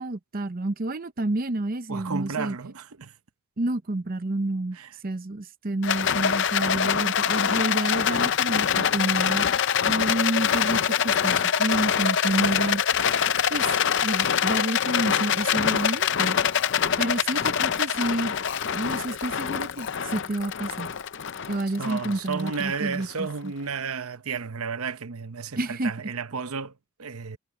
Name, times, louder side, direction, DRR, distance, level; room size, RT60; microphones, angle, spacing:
voice 1, 0.0-2.6 3.6-4.8 5.0-9.4 9.8-12.8 13.5-16.4 17.0-18.3 18.7-20.9 21.5-23.5 25.6-25.9, right 2 dB, 40° right, 0.7 m, -29 dB
voice 2, 1.9-3.1 4.7-4.9 17.4-17.5 21.8-27.4, right 5 dB, 80° right, 0.9 m, -33 dB
Rattle, 5.8-23.2, left 8 dB, 55° left, 0.6 m, -24 dB
head